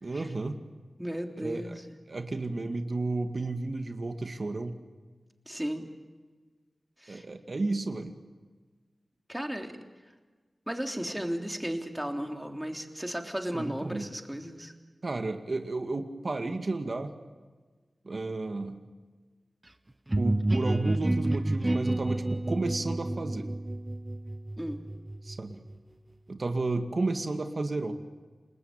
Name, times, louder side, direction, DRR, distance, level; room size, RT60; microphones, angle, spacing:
voice 1, 0.0-0.6 1.4-1.8 2.1-4.7 7.1-8.1 13.5-14.1 15.0-17.1 18.0-18.8 20.2-23.5 25.2-25.6 26.3-27.9, right 3 dB, 55° right, 6 dB, 2.1 m, -32 dB
voice 2, 1.0-2.0 5.4-5.9 7.0-7.2 9.3-9.8 10.7-14.7 24.6-24.8, equal, 10° right, 3 dB, 3.3 m, -35 dB
sound 1, 20.1-25.7, right 1 dB, 25° right, 1.1 m, -29 dB
29.0 x 20.5 x 9.0 m, 1.4 s
wide cardioid pair, 70°, 0 cm